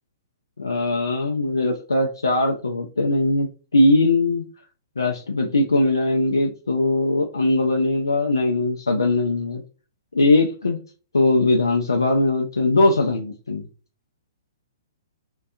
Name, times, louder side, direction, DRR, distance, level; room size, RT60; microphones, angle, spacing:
voice 1, 0.6-4.5 5.0-9.6 10.1-10.8 11.1-13.6, left 2 dB, 80° left, 1 dB, 0.4 m, -20 dB
2.5 x 2.2 x 2.3 m, 0.35 s
figure-of-eight pair, 115°, 2 cm